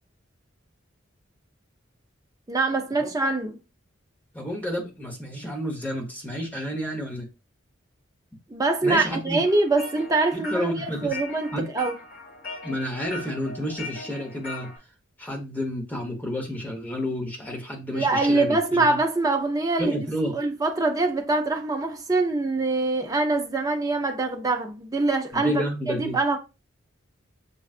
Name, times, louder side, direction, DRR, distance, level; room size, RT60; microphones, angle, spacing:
voice 1, 2.5-3.6 8.5-11.9 17.9-19.9 20.2-26.4, right 3 dB, 15° right, 0.6 m, -24 dB
voice 2, 4.3-7.3 8.8-9.4 10.3-11.2 11.5-11.7 12.6-14.7 15.2-19.0 19.8-20.3 25.3-26.2, equal, 10° left, 1.1 m, -30 dB
sound 1, 9.4-14.8, left 2 dB, 45° left, 2.0 m, -40 dB
6.9 x 2.4 x 2.5 m
head